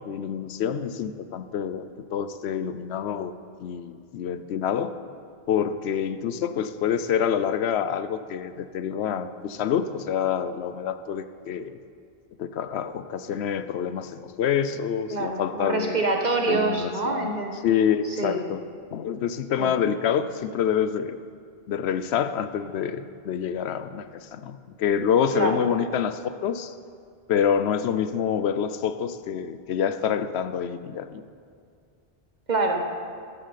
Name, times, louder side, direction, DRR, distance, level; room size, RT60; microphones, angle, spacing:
voice 1, 0.0-3.3 3.6-4.9 5.5-11.8 12.4-16.0 16.5-17.3 17.6-18.6 18.9-21.2 21.7-26.7 27.3-31.2, left 8 dB, 80° left, 11 dB, 0.9 m, -27 dB
voice 2, 15.1-17.6 18.0-18.4 19.6-19.8 25.3-25.6 32.5-32.9, right 2 dB, 45° right, 3 dB, 1.3 m, -26 dB
15.5 x 13.0 x 4.1 m, 2.2 s
omnidirectional pair, 1.1 m